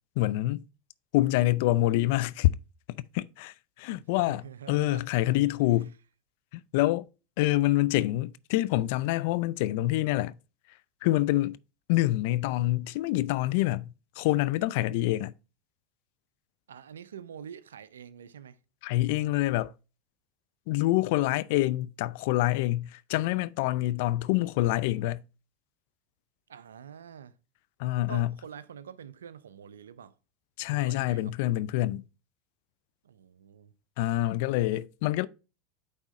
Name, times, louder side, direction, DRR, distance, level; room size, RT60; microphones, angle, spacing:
voice 1, 0.2-0.6 1.1-2.5 3.1-4.4 4.7-5.9 6.5-7.1 7.4-10.4 11.0-11.6 11.9-15.3 18.8-19.7 20.7-25.2 27.8-28.3 30.6-32.0 34.0-35.3, left 16 dB, 65° left, 0.4 m, -26 dB
voice 2, 4.2-5.1 16.7-18.6 26.5-27.3 28.1-30.1 30.7-31.3 33.0-33.7, right 8 dB, 85° right, 0.5 m, -46 dB
9.0 x 3.6 x 4.2 m
hypercardioid pair, 95°, 0 cm